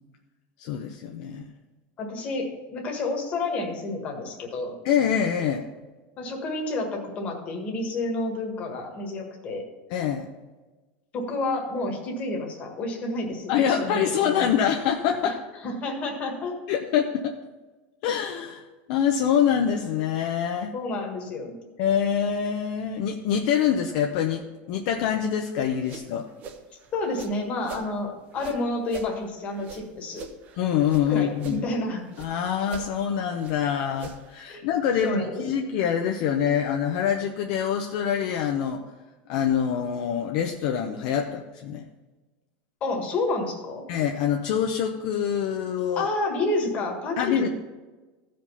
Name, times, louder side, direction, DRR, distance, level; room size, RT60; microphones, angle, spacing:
voice 1, 0.6-1.4 4.8-5.6 9.9-10.3 13.5-15.3 16.7-17.3 18.0-18.6 18.9-20.7 21.8-24.4 24.7-26.3 30.6-31.7 32.2-38.8 39.3-41.8 43.9-46.1 47.2-47.5, left 8 dB, 50° left, 3 dB, 0.7 m, -25 dB
voice 2, 2.0-4.7 6.2-9.6 11.1-14.5 15.2-15.3 15.6-16.5 20.7-21.6 26.9-30.2 31.1-32.0 34.5-34.7 35.0-35.4 42.8-43.9 46.0-47.5, left 2 dB, 25° left, 2 dB, 1.6 m, -30 dB
sound 1, 25.6-27.9 28.3-31.1 31.3-32.3 32.6-34.4, right 5 dB, 30° right, 0.7 m, -43 dB
15.0 x 5.2 x 5.5 m, 1.2 s
supercardioid pair, 175°, 5 cm